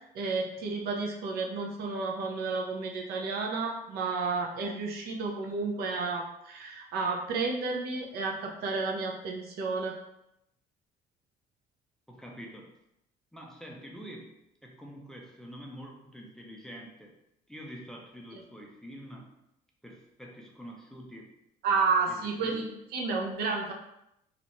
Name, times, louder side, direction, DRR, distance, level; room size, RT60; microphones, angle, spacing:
voice 1, 0.1-10.0 21.6-23.7, right 4 dB, 65° right, 1 dB, 0.5 m, -31 dB
voice 2, 12.1-12.7 13.3-14.3 14.6-17.2 17.5-19.3 19.8-21.3 22.1-22.6, equal, 5° left, -1 dB, 0.4 m, -46 dB
2.5 x 2.1 x 2.9 m, 0.82 s
cardioid pair, 110°, 17 cm